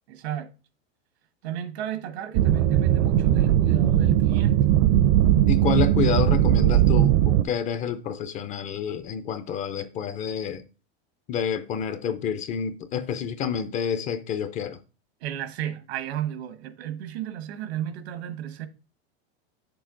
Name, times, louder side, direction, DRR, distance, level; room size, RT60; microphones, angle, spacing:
voice 1, 0.1-0.5 1.4-4.7 15.2-18.7, right 10 dB, 80° right, 1.2 m, -33 dB
sound 1, 2.3-7.4, right 12 dB, 50° right, 0.6 m, -19 dB
voice 2, 5.5-10.6 11.3-14.8, left 7 dB, 25° left, 0.4 m, -28 dB
8.1 x 6.7 x 3.7 m
supercardioid pair, 155°, 31 cm